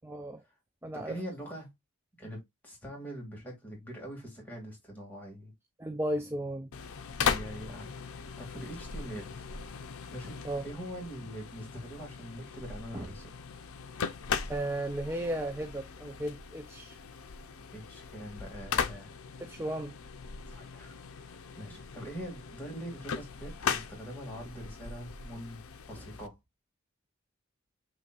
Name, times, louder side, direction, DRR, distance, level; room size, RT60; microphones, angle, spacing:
voice 1, 0.0-0.4 0.8-1.2 5.8-6.7 10.4-10.7 12.9-13.1 14.5-17.0 19.4-20.0, right 1 dB, 10° right, 0.4 m, -35 dB
voice 2, 0.9-1.7 2.2-5.5 7.2-9.4 10.1-10.4 10.6-13.3 17.7-19.2 20.5-25.6 25.9-26.4, equal, 10° left, 2.2 m, -43 dB
sound 1, 6.7-26.3, left 6 dB, 85° left, 0.6 m, -38 dB
6.8 x 3.2 x 2.4 m
head